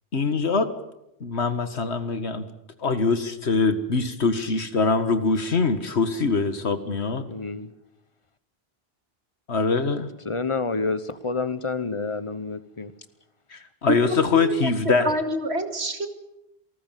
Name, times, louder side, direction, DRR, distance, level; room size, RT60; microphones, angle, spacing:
voice 1, 0.1-0.7 1.2-2.5 2.8-7.3 9.5-10.1 13.5-15.1, left 4 dB, 85° left, 10 dB, 2.0 m, -23 dB
voice 2, 7.3-7.7 10.2-12.9, left 4 dB, 30° left, 13 dB, 1.1 m, -28 dB
voice 3, 14.0-14.7 15.0-16.1, equal, 80° right, 7 dB, 2.6 m, -28 dB
27.0 x 19.5 x 7.6 m, 0.87 s
omnidirectional pair, 1.1 m